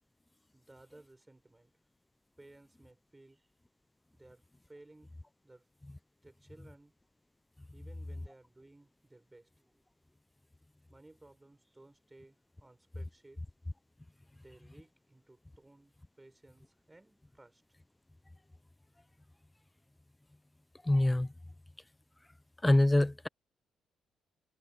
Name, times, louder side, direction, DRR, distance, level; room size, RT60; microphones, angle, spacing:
voice 1, 0.5-1.7 2.4-3.5 4.1-4.4 4.7-5.1 5.4-5.6 6.2-6.9 7.7-9.8 10.9-13.4 14.3-17.6, right 2 dB, 15° right, 6.6 m, -59 dB
voice 2, 20.8-21.3 22.6-23.3, left 1 dB, 10° left, 0.6 m, -25 dB
cardioid pair, 90°, 0 cm